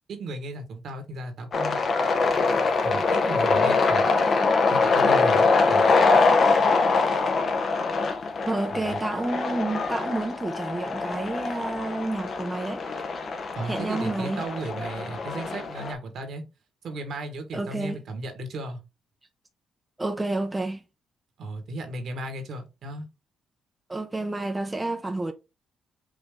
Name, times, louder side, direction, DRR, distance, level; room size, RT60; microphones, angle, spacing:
voice 1, 0.1-1.8 2.8-4.1 4.7-5.9 13.5-16.4 16.8-18.8 21.4-23.1, right 2 dB, 65° right, 1.5 m, -35 dB
sound 1, 1.5-15.9, left 4 dB, 50° left, 0.8 m, -23 dB
voice 2, 8.5-12.8 13.6-14.4 17.5-18.0 20.0-20.8 23.9-25.3, right 2 dB, 15° right, 0.6 m, -30 dB
5.1 x 2.8 x 3.5 m
cardioid pair, 90°, 0 cm